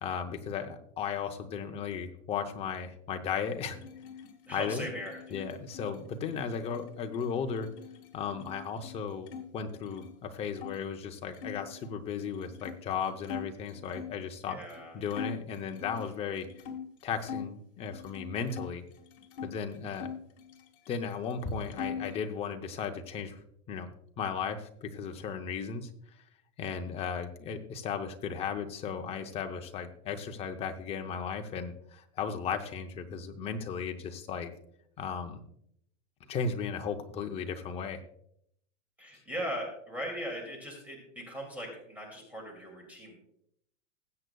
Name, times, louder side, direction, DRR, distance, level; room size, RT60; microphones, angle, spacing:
voice 1, 0.0-3.8 4.5-4.9 5.3-7.7 8.1-14.6 14.9-16.5 17.0-18.8 19.4-20.1 20.9-23.4 23.7-23.9 24.2-25.9 26.6-34.5 35.0-35.4 36.3-38.0, left 6 dB, 15° left, 5 dB, 0.6 m, -35 dB
sound 1, 3.7-9.4 9.7-10.8 11.3-14.2 14.7-14.8 15.1-17.5 17.9-19.5 19.9-21.0 21.3-22.2, left 7 dB, 60° left, 1.8 m, -43 dB
voice 2, 4.5-5.4 14.5-14.9 39.0-43.1, equal, 5° right, 0 dB, 2.4 m, -39 dB
20.0 x 7.9 x 2.3 m, 0.71 s
supercardioid pair, 155°, 37 cm